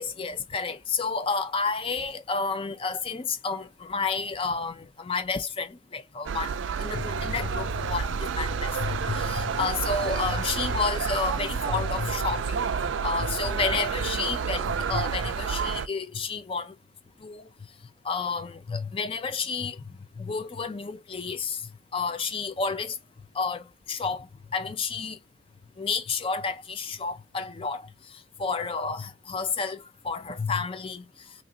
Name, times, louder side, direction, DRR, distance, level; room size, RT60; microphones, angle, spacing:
voice 1, 0.0-12.6 13.0-16.7 17.2-17.4 18.0-19.8 20.2-21.6 21.9-23.0 23.4-24.3 24.5-25.2 25.8-27.9 28.4-31.0, left 4 dB, 25° left, 0.4 m, -30 dB
sound 1, 6.3-15.9, right 6 dB, 65° right, 0.3 m, -29 dB
2.9 x 2.5 x 3.7 m
head